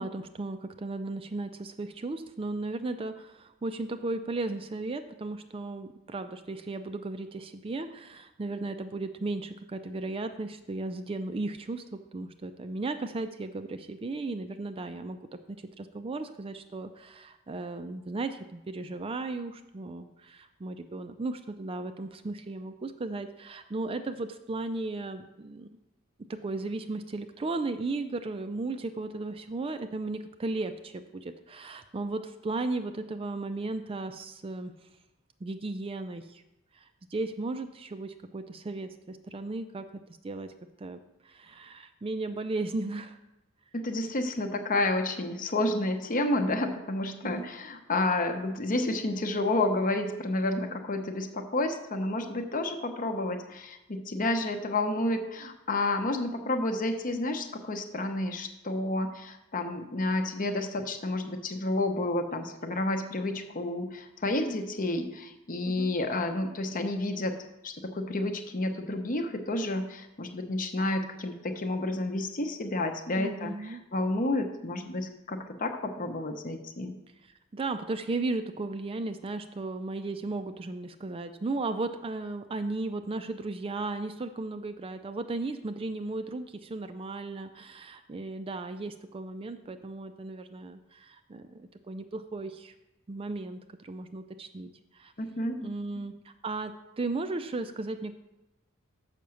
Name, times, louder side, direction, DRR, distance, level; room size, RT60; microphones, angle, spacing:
voice 1, 0.0-15.2 15.5-25.7 26.3-34.7 35.4-36.4 36.7-40.5 40.8-43.2 47.2-47.5 65.6-66.0 73.2-73.8 77.5-92.7 93.1-95.1 95.6-98.1, right 2 dB, 25° right, 9 dB, 0.4 m, -35 dB
voice 2, 43.7-67.3 67.6-76.9 95.2-95.6, left 2 dB, 40° left, 6 dB, 0.8 m, -30 dB
6.8 x 5.8 x 6.3 m, 0.95 s
head